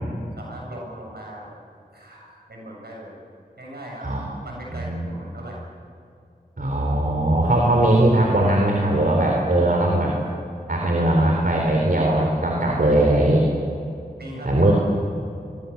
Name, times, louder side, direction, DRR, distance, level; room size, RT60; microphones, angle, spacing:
voice 1, 0.3-1.5 1.9-3.2 3.6-5.6 14.2-14.7, right 1 dB, 90° right, -2 dB, 7.8 m, -39 dB
voice 2, 4.0-4.3 4.7-5.1 6.6-10.2 10.7-13.4 14.4-14.7, right 1 dB, 60° right, -1 dB, 4.1 m, -19 dB
26.5 x 22.5 x 7.3 m, 2.5 s
wide cardioid pair, 50°, 16 cm